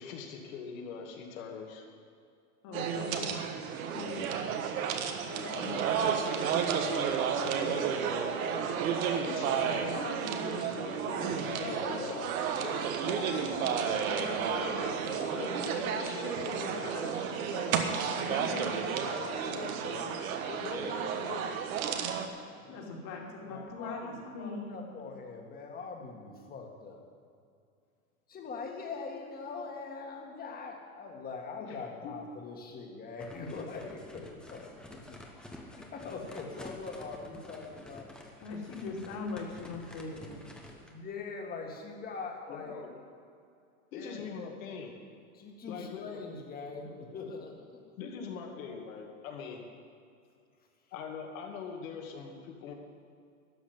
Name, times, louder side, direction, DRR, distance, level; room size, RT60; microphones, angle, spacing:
voice 1, 0.0-1.8 2.9-3.4 3.8-4.4 5.3-8.8 9.2-12.2 12.6-15.0 15.3-17.8 18.3-20.2 20.5-21.6 42.5-42.9 43.9-45.0 45.6-46.2 48.0-49.7 50.9-52.7, left 5 dB, 65° left, 2 dB, 2.4 m, -42 dB
voice 2, 2.6-3.3 18.1-18.6 22.7-24.8 31.6-31.8 32.0-32.2 38.4-40.4, left 3 dB, 40° left, 0 dB, 2.7 m, -41 dB
sound 1, 2.7-22.3, right 7 dB, 65° right, 1.5 m, -32 dB
sound 2, 11.2-13.7, right 10 dB, 50° right, 1.4 m, -50 dB
voice 3, 11.6-12.9 15.1-16.0 22.6-22.8 23.4-27.0 28.3-34.6 34.9-35.0 35.7-38.1 40.8-42.8 43.9-44.2 45.3-47.7, left 4 dB, 20° left, 1 dB, 1.9 m, -42 dB
sound 3, 33.2-41.0, left 1 dB, ahead, 1.0 m, -50 dB
12.5 x 6.4 x 9.7 m, 2.4 s
supercardioid pair, 135°, 44 cm